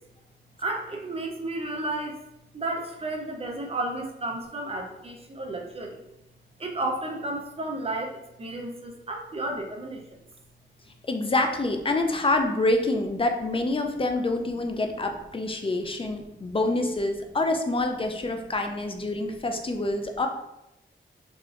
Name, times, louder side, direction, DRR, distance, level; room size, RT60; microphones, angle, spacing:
voice 1, 0.6-2.2 2.5-6.0 6.6-10.0 16.4-16.5, right 2 dB, 30° right, 2 dB, 0.5 m, -32 dB
voice 2, 11.1-20.3, left 2 dB, 25° left, 4 dB, 0.3 m, -26 dB
3.4 x 2.5 x 2.4 m, 0.89 s
wide cardioid pair, 105°, 21 cm